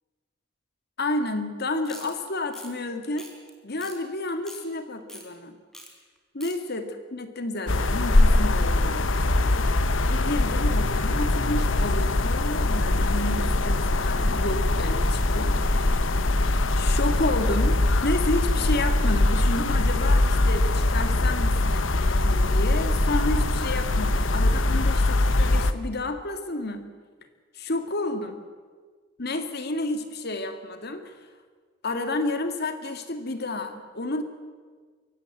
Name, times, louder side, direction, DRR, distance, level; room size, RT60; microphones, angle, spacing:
voice 1, 1.0-3.3 3.6-5.6 6.3-9.7 10.0-16.3 16.7-17.8 18.0-26.9 27.5-28.4 29.2-31.2 31.8-34.2, left 2 dB, 55° left, 8 dB, 2.0 m, -31 dB
sound 1, 1.9-2.1 2.5-2.7 3.2-3.5 3.8-4.0 4.3-4.6 5.1-5.2 5.7-5.9 6.2-6.5, equal, 5° left, 4.0 m, -43 dB
sound 2, 7.7-25.7, left 2 dB, 80° left, 1.1 m, -22 dB
23.5 x 17.0 x 7.9 m, 1.5 s
head